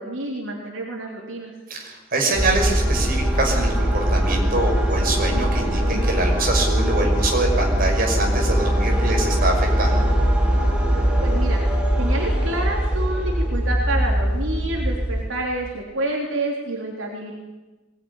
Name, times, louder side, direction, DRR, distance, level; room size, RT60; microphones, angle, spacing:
voice 1, 0.0-1.5 11.2-11.6 12.0-17.3, right 1 dB, 75° right, 0 dB, 3.7 m, -28 dB
voice 2, 1.7-10.0, right 2 dB, 45° right, 1 dB, 6.0 m, -24 dB
sound 1, 2.3-15.2, equal, 5° right, 5.3 m, -21 dB
22.0 x 19.0 x 9.9 m, 1.1 s
head